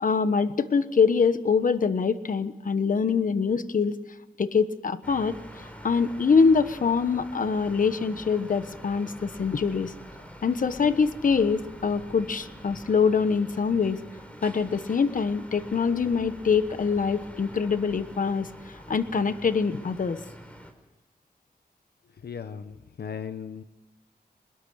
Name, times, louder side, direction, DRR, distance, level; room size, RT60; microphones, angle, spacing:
voice 1, 0.0-4.0 4.4-9.9 10.4-14.0 14.4-20.2, left 5 dB, 55° left, 12 dB, 1.3 m, -24 dB
sound 1, 5.0-20.7, equal, 10° left, 4.7 m, -45 dB
voice 2, 22.2-23.6, left 7 dB, 75° left, 10 dB, 1.1 m, -37 dB
23.5 x 21.0 x 6.5 m, 1.0 s
wide cardioid pair, 90°, 16 cm